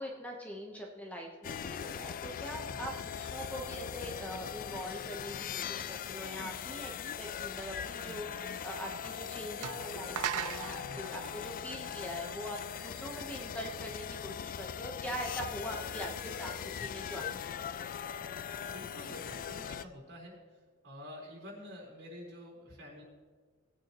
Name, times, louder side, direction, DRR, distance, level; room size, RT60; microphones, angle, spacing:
voice 1, 0.0-6.9 7.2-17.7, equal, 5° left, 0 dB, 1.0 m, -43 dB
sound 1, 1.4-19.8, left 8 dB, 40° left, 0.3 m, -40 dB
sound 2, 9.0-9.1 9.6-12.4, right 10 dB, 85° right, 0.4 m, -39 dB
voice 2, 18.7-20.3 20.8-23.0, left 1 dB, 50° right, -2 dB, 4.1 m, -48 dB
19.0 x 9.0 x 3.0 m, 1.5 s
head